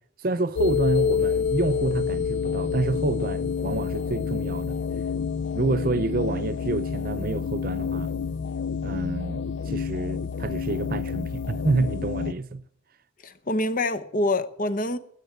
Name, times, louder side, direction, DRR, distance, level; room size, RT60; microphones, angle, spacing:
voice 1, 0.2-4.8 5.5-8.1 8.8-12.6, right 3 dB, 45° right, 0.6 m, -28 dB
sound 1, 0.6-12.3, left 6 dB, 65° left, 0.5 m, -28 dB
voice 2, 13.2-15.0, left 2 dB, 45° left, 0.8 m, -26 dB
13.5 x 9.9 x 8.1 m
head